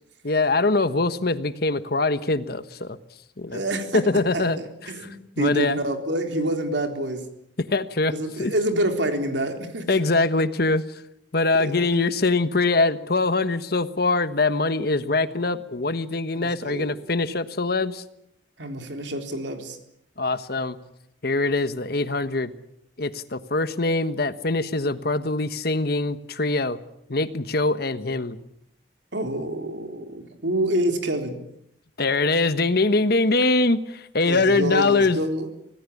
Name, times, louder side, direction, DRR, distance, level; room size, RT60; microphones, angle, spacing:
voice 1, 0.2-3.0 3.4-3.6 3.9-4.6 5.4-5.8 7.6-8.1 8.4-8.5 9.9-10.8 11.3-18.0 20.2-20.8 21.2-22.5 23.0-26.8 27.1-28.4 32.0-35.2, left 3 dB, 55° left, 12 dB, 1.3 m, -23 dB
voice 2, 3.5-7.3 8.1-10.0 11.5-11.7 16.4-17.0 18.6-19.8 29.1-31.5 34.2-35.5, right 1 dB, 75° right, 5 dB, 3.8 m, -27 dB
25.5 x 18.5 x 8.5 m, 0.77 s
head